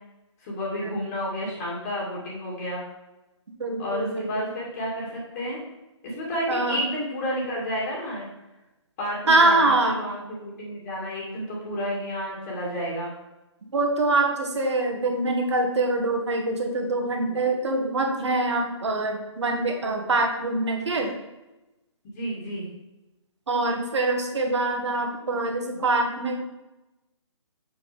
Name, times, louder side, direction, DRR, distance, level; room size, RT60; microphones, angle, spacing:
voice 1, 0.4-2.8 3.8-5.6 6.0-8.3 9.0-13.1 22.1-22.7, equal, 30° left, -4 dB, 2.3 m, -31 dB
voice 2, 3.6-4.5 6.5-6.8 9.3-10.0 13.7-21.1 23.5-26.4, right 2 dB, 65° right, 3 dB, 1.7 m, -24 dB
7.0 x 6.4 x 3.5 m, 1.0 s
figure-of-eight pair, 145°, 16 cm